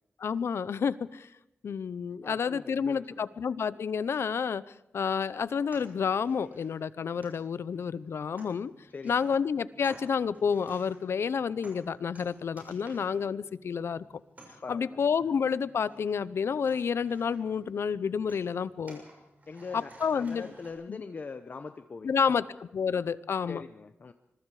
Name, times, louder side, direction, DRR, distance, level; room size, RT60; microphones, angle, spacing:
voice 1, 0.2-1.3 1.6-4.6 4.9-8.7 9.0-14.0 14.7-19.0 19.7-20.5 20.9-21.0 22.0-22.4 22.7-23.6, left 6 dB, 90° left, 17 dB, 0.8 m, -29 dB
voice 2, 2.2-3.2 8.9-9.4 14.6-15.3 19.5-22.4 23.5-24.1, left 4 dB, 45° left, 9 dB, 0.8 m, -42 dB
sound 1, 5.7-20.7, right 2 dB, 40° right, 6.7 m, -56 dB
26.0 x 22.5 x 4.9 m, 0.86 s
wide cardioid pair, 175°, 4 cm